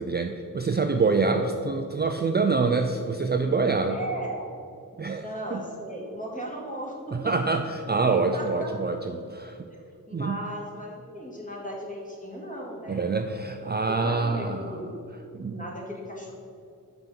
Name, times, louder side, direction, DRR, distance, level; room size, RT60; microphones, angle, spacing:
voice 1, 0.0-4.0 5.0-5.2 5.5-5.6 7.1-9.6 10.1-10.4 12.9-14.8 15.3-15.6, right 4 dB, 30° right, 5 dB, 0.4 m, -26 dB
voice 2, 3.9-4.5 4.9-7.3 7.9-8.8 9.6-13.1 13.9-15.0 15.5-16.3, right 1 dB, 25° left, -2 dB, 2.2 m, -37 dB
5.9 x 5.9 x 6.9 m, 2.5 s
wide cardioid pair, 70°, 34 cm